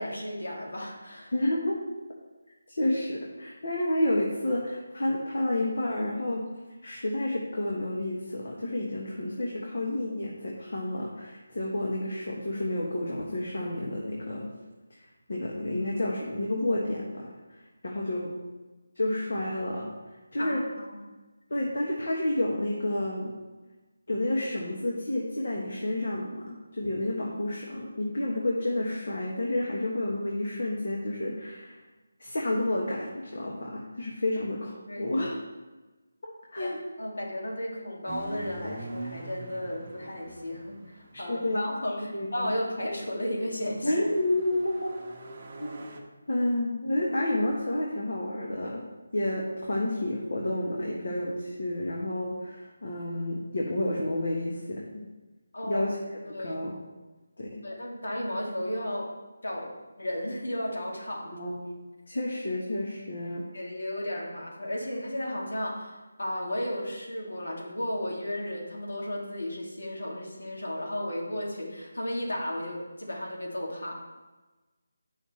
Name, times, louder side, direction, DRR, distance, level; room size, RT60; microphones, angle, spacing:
voice 1, 0.0-1.3 20.4-21.0 34.3-34.4 34.9-35.1 36.6-36.7 37.0-43.9 55.5-55.9 56.3-56.6 57.6-59.1 59.4-59.7 60.0-61.4 63.5-73.9, left 1 dB, 85° left, -3 dB, 2.6 m, -34 dB
voice 2, 1.3-1.8 2.7-6.5 6.8-14.5 14.9-15.0 15.3-18.3 18.9-19.9 20.3-20.6 21.5-23.3 24.1-31.8 32.2-35.4 36.5-36.8 41.1-41.6 42.1-42.5 43.8-44.9 45.6-45.8 46.3-48.8 49.1-54.8 55.6-56.0 56.4-56.8 57.4-57.6 61.3-61.5 62.1-63.4, left 1 dB, 60° left, -3 dB, 1.5 m, -30 dB
sound 1, 38.1-41.6 42.7-46.0, right 2 dB, 25° right, 1.1 m, -43 dB
8.8 x 5.7 x 4.3 m, 1.2 s
figure-of-eight pair, 175°, 0 cm